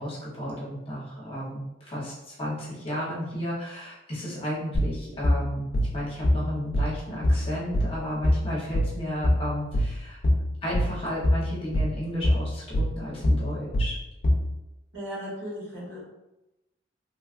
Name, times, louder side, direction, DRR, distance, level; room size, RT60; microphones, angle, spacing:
voice 1, 0.0-5.7 5.9-10.2 10.6-14.0, equal, 30° left, -7 dB, 0.9 m, -33 dB
sound 1, 4.7-14.5, left 1 dB, 50° left, 0.4 m, -24 dB
voice 2, 14.9-16.1, equal, 75° right, -7 dB, 1.4 m, -36 dB
2.9 x 2.4 x 2.4 m, 0.96 s
head